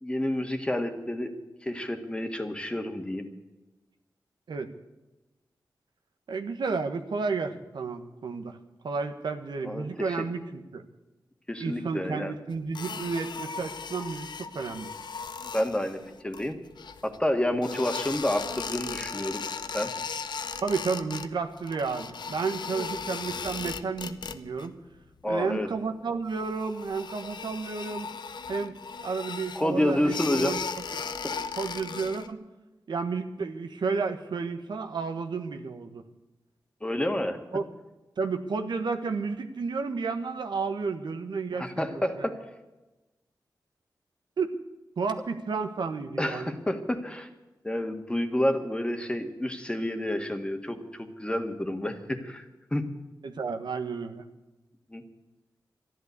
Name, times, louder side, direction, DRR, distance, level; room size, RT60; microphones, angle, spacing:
voice 1, 0.0-1.3 1.6-3.2 9.6-10.2 11.5-12.4 15.5-16.5 17.0-19.4 19.7-19.9 22.7-22.9 25.2-25.7 29.5-30.5 31.2-31.4 36.8-37.4 41.6-42.3 46.2-47.3 47.6-52.4 52.7-52.8 54.9-55.0, left 1 dB, 15° left, 6 dB, 1.7 m, -29 dB
voice 2, 6.3-8.6 8.8-10.8 11.6-14.9 20.6-24.7 25.3-28.1 28.5-30.6 31.6-32.4 32.9-36.0 37.5-37.6 38.2-42.3 44.4-44.5 45.0-46.5 53.2-54.2, right 4 dB, 85° right, 7 dB, 1.4 m, -32 dB
sound 1, 12.7-17.2 17.6-21.3 21.5-24.7 24.9-25.4 25.7-25.8 26.3-32.3, left 5 dB, 80° left, 0.9 m, -37 dB
13.0 x 11.5 x 8.2 m, 1.1 s
wide cardioid pair, 95°, 8 cm